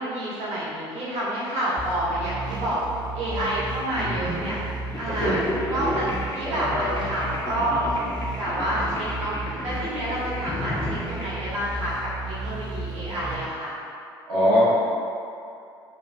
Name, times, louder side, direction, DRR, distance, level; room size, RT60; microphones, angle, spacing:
voice 1, 0.0-2.8 3.1-4.6 5.0-5.4 5.7-7.8 8.3-13.7, right 1 dB, 55° right, -9 dB, 1.4 m, -28 dB
sound 1, 1.8-13.3, right 3 dB, 35° right, 0.6 m, -34 dB
voice 2, 3.9-4.5 5.2-5.5 14.3-14.6, equal, 85° right, -10 dB, 1.0 m, -23 dB
sound 2, 4.9-11.3, left 1 dB, 20° left, 0.6 m, -33 dB
3.2 x 3.2 x 2.6 m, 2.5 s
hypercardioid pair, 60°, 13 cm